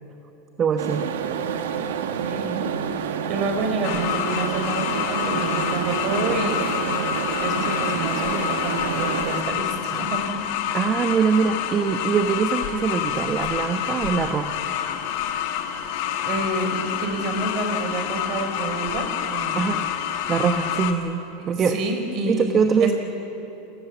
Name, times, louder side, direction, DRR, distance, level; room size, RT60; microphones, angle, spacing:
voice 1, 0.6-1.1 10.7-14.6 19.5-19.8 20.3-21.8 22.3-22.9, right 6 dB, 30° right, 6 dB, 1.2 m, -23 dB
sound 1, 0.8-9.4, right 7 dB, 90° right, 1.7 m, -28 dB
voice 2, 2.2-2.7 3.0-6.6 7.4-10.4 16.2-19.8 21.4-22.9, right 2 dB, 50° right, 5 dB, 4.8 m, -29 dB
sound 2, 3.8-20.9, left 9 dB, 70° left, 2.0 m, -27 dB
29.0 x 18.5 x 7.3 m, 2.9 s
supercardioid pair, 120°, 0 cm